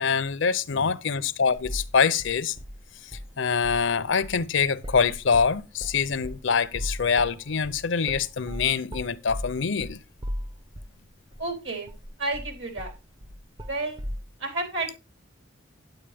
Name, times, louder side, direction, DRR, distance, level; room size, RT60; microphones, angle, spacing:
voice 1, 0.0-2.6 3.4-10.0, left 6 dB, 70° left, 0.6 m, -25 dB
sound 1, 1.5-1.9 2.2-3.3 3.6-3.9 4.2-11.0 11.3-11.4 11.9-14.2, equal, 25° right, 0.7 m, -37 dB
voice 2, 11.4-11.9 12.2-12.9 13.7-14.0 14.4-15.0, right 2 dB, 70° right, 3.9 m, -31 dB
9.3 x 8.8 x 3.5 m
head